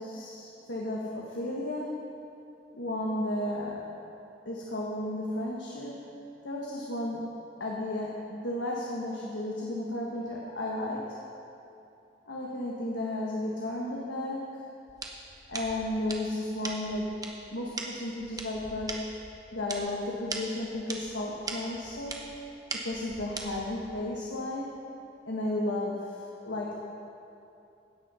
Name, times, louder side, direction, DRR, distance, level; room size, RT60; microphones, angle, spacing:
voice 1, 0.0-1.9 2.7-3.8 4.4-6.0 6.4-7.2 7.6-11.2 12.3-14.4 15.5-17.2 17.5-19.0 19.5-22.2 22.7-24.7 25.2-26.7, left 1 dB, 85° left, -3 dB, 1.5 m, -33 dB
sound 1, 14.9-23.9, right 3 dB, 20° right, 1.0 m, -41 dB
16.5 x 6.6 x 5.6 m, 2.8 s
head